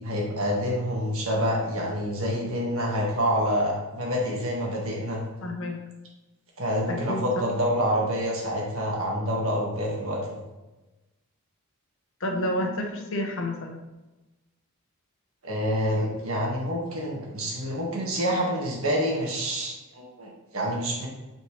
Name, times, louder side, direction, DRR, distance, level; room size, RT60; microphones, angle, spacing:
voice 1, 0.0-5.2 6.6-10.4 15.4-21.1, equal, 65° right, -2 dB, 1.7 m, -27 dB
voice 2, 5.4-5.8 6.9-7.5 12.2-13.8, left 1 dB, 60° left, 3 dB, 1.0 m, -30 dB
8.7 x 4.4 x 3.2 m, 1.1 s
head